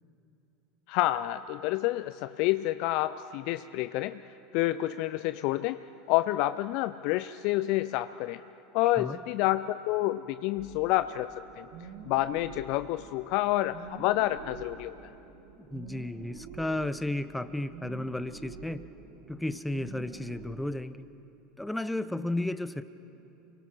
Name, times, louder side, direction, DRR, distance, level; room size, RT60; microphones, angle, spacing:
voice 1, 0.9-4.2 4.5-8.4 8.7-11.7 12.0-15.0, left 16 dB, 55° left, 12 dB, 0.4 m, -29 dB
voice 2, 8.8-9.2 15.6-18.8 19.3-21.0 21.6-22.8, left 1 dB, 5° left, 13 dB, 0.8 m, -33 dB
sound 1, 10.5-20.5, right 5 dB, 60° right, 2.3 m, -47 dB
29.5 x 23.5 x 4.7 m, 2.9 s
hypercardioid pair, 80°, 0 cm